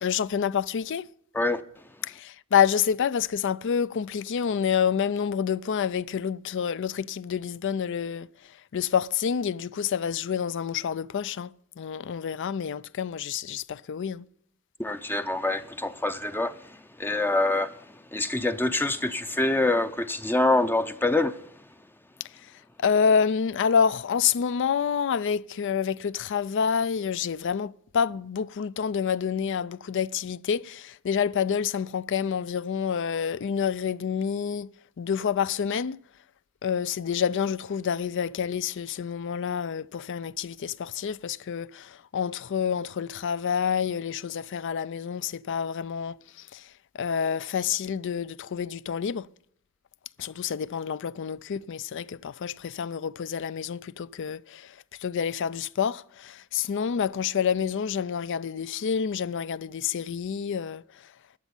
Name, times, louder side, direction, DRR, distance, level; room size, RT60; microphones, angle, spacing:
voice 1, 0.0-1.1 2.0-14.3 22.2-22.5 22.8-36.0 36.6-49.3 50.2-61.1, left 7 dB, 60° left, 0.4 m, -28 dB
voice 2, 14.8-21.6, left 2 dB, 10° left, 0.5 m, -26 dB
12.0 x 7.3 x 9.7 m
head